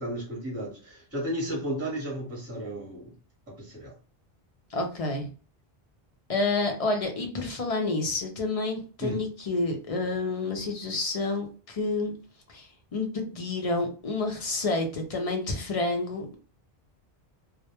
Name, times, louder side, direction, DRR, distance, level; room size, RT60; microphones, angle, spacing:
voice 1, 0.0-3.1 3.5-3.9 9.0-9.2, right 1 dB, 15° right, -3 dB, 0.9 m, -33 dB
voice 2, 4.7-5.3 6.3-12.1 12.5-16.4, left 3 dB, 55° left, 3 dB, 0.4 m, -29 dB
2.1 x 2.1 x 2.8 m, 0.38 s
omnidirectional pair, 1.0 m